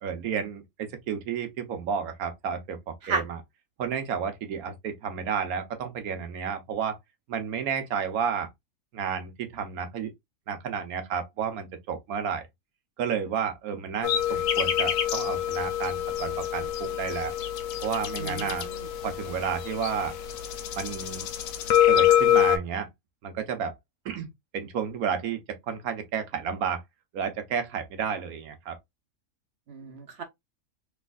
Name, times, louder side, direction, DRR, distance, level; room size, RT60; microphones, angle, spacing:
voice 1, 0.0-3.4 3.8-7.0 7.3-8.5 8.9-10.1 10.5-12.5 13.0-17.3 17.8-18.7 19.0-20.1 20.7-21.3 21.9-22.9 23.2-23.8 24.0-24.3 24.5-26.8 27.1-28.8, right 7 dB, 80° right, 1.2 m, -31 dB
sound 1, 14.0-22.6, left 11 dB, 75° left, 1.0 m, -26 dB
voice 2, 18.2-18.9 29.7-30.2, right 4 dB, 55° right, 0.9 m, -33 dB
3.3 x 3.2 x 2.3 m
omnidirectional pair, 1.5 m